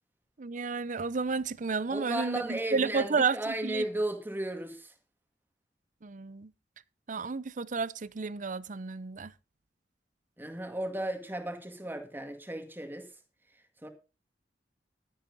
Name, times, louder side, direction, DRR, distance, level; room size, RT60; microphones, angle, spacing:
voice 1, 0.4-3.9 6.0-6.5 7.1-9.3, right 4 dB, 45° right, 0.6 m, -31 dB
voice 2, 1.9-4.9 10.4-13.1 13.8-13.9, right 1 dB, 10° right, 2.0 m, -35 dB
12.0 x 10.5 x 4.0 m
head